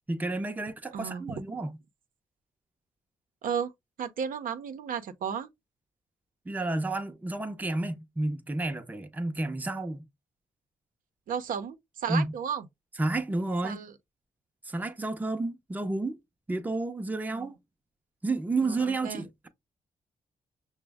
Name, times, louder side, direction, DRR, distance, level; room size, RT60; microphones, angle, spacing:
voice 1, 0.1-1.8 6.5-10.0 12.1-12.3 13.0-13.8 14.6-16.2 16.5-17.6 18.2-19.5, right 2 dB, 10° right, 0.6 m, -31 dB
voice 2, 0.9-1.4 3.4-3.7 4.0-5.5 11.3-12.6 13.6-13.9 17.3-17.5 18.6-18.8 19.0-19.3, right 7 dB, 75° right, 0.6 m, -33 dB
6.0 x 2.1 x 3.4 m
cardioid pair, 105°, 14 cm